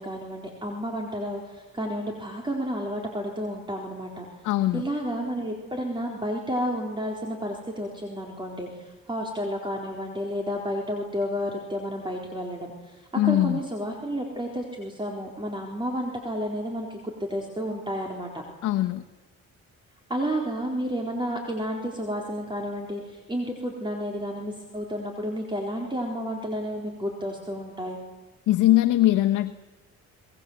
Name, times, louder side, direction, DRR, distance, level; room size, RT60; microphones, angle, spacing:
voice 1, 0.0-4.3 4.7-18.4 20.1-28.0, equal, 15° right, 0 dB, 4.1 m, -31 dB
voice 2, 4.4-4.9 13.1-13.6 18.6-19.0 28.5-29.6, left 15 dB, 85° left, 5 dB, 1.1 m, -21 dB
26.5 x 20.5 x 8.1 m, 1.3 s
cardioid pair, 90°, 30 cm